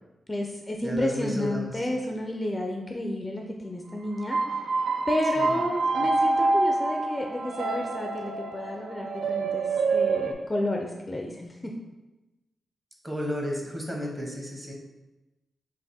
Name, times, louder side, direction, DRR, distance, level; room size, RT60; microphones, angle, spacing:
voice 1, 0.3-4.4 5.1-9.7 9.9-11.7, left 1 dB, 20° left, 1 dB, 0.4 m, -31 dB
voice 2, 0.8-1.9 5.4-5.6 13.0-14.7, equal, 20° right, 0 dB, 0.9 m, -32 dB
sound 1, 4.1-10.3, right 3 dB, 85° right, 0.3 m, -27 dB
3.5 x 2.5 x 4.1 m, 1.1 s
cardioid pair, 80°, 0 cm